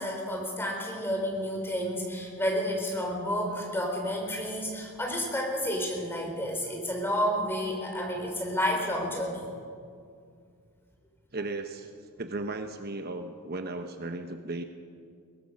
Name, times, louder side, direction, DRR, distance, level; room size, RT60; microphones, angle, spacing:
voice 1, 0.0-9.5, equal, 10° left, 0 dB, 4.2 m, -30 dB
voice 2, 11.3-11.9 12.2-14.6, right 2 dB, 45° right, 7 dB, 0.9 m, -35 dB
22.5 x 18.0 x 6.4 m, 2.3 s
head